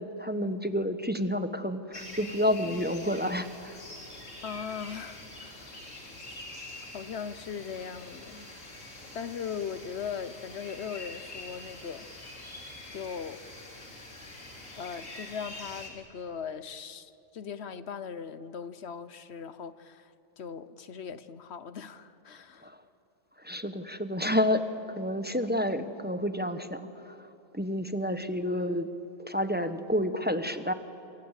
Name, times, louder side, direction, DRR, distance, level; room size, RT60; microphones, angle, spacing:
voice 1, 0.0-3.7 22.6-22.8 23.4-24.6 25.0-27.3 27.5-28.9 29.2-30.7, equal, 10° right, 9 dB, 0.9 m, -29 dB
sound 1, 1.9-15.9, left 2 dB, 80° left, 3.7 m, -45 dB
voice 2, 4.4-5.8 6.3-6.4 6.9-8.5 9.1-12.1 12.9-13.4 14.8-22.7, left 7 dB, 60° left, 14 dB, 1.1 m, -39 dB
28.0 x 24.5 x 8.2 m, 2.8 s
omnidirectional pair, 1.3 m